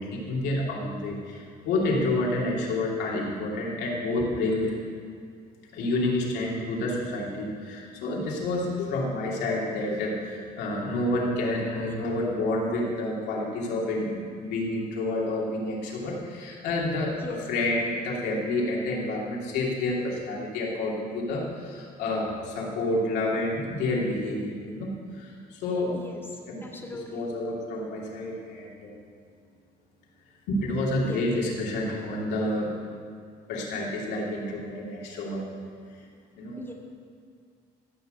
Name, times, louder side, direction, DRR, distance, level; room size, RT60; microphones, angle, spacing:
voice 1, 0.0-4.8 5.7-24.9 25.2-26.0 26.5-26.6 27.1-29.0 30.5-32.7 33.5-35.5 36.4-36.6, left 2 dB, 85° left, -3 dB, 2.9 m, -29 dB
voice 2, 26.6-27.3 31.0-31.2 36.6-36.7, left 2 dB, 15° left, 0 dB, 2.1 m, -39 dB
14.5 x 6.2 x 8.1 m, 2.2 s
cardioid pair, 110°, 17 cm